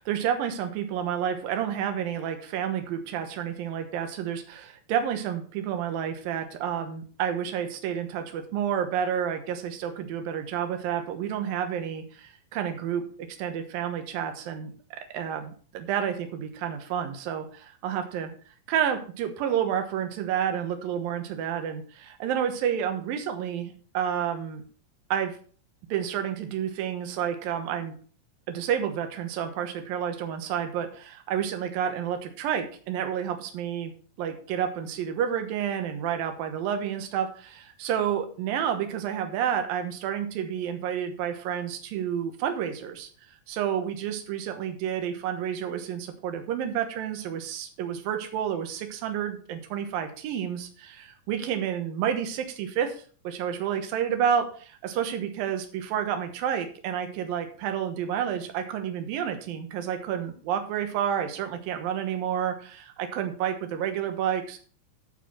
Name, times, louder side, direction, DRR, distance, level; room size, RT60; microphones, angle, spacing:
voice 1, 0.0-18.3 18.7-24.6 25.1-25.4 25.9-28.0 28.5-33.9 34.2-43.1 43.5-53.0 53.2-64.6, right 9 dB, 75° right, 6 dB, 2.9 m, -30 dB
12.0 x 4.6 x 6.1 m, 0.43 s
omnidirectional pair, 4.1 m